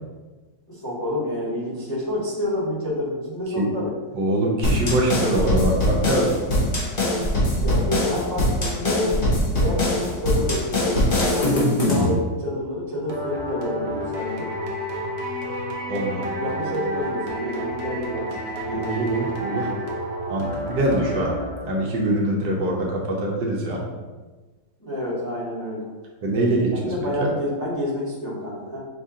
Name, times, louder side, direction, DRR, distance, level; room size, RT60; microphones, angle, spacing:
voice 1, 0.7-3.9 7.6-9.2 9.5-14.5 16.4-18.4 24.8-25.8 26.7-28.8, left 1 dB, 15° left, -9 dB, 1.4 m, -28 dB
voice 2, 4.1-6.4 15.9-16.3 18.7-19.7 20.3-21.3 21.7-23.8 26.2-26.9 27.2-27.3, right 1 dB, 75° right, -2 dB, 1.5 m, -23 dB
sound 1, 4.6-12.1, left 1 dB, 35° left, 1.0 m, -22 dB
sound 2, 13.1-22.0, right 1 dB, 50° right, 0.8 m, -30 dB
5.4 x 2.7 x 3.7 m, 1.3 s
omnidirectional pair, 1.9 m